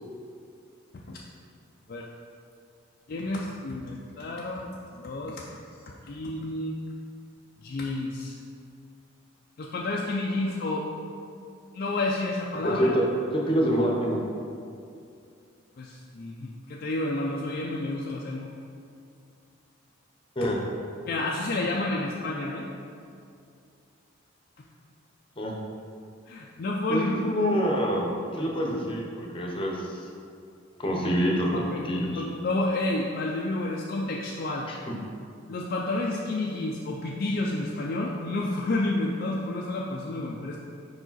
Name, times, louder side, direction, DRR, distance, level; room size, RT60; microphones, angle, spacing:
voice 1, 3.1-4.7 5.0-5.6 6.1-6.8 7.6-8.4 9.6-10.9 11.7-13.0 15.8-18.5 20.4-20.5 21.1-22.7 26.3-27.2 31.5-31.9 32.2-34.7 35.5-40.6, left 2 dB, 45° left, -2 dB, 0.4 m, -30 dB
voice 2, 12.6-13.0 13.3-14.2 20.4-20.6 25.4-25.5 26.9-29.9 30.8-32.2 34.7-34.9, equal, 25° left, -1 dB, 0.7 m, -26 dB
4.9 x 4.8 x 4.0 m, 2.4 s
head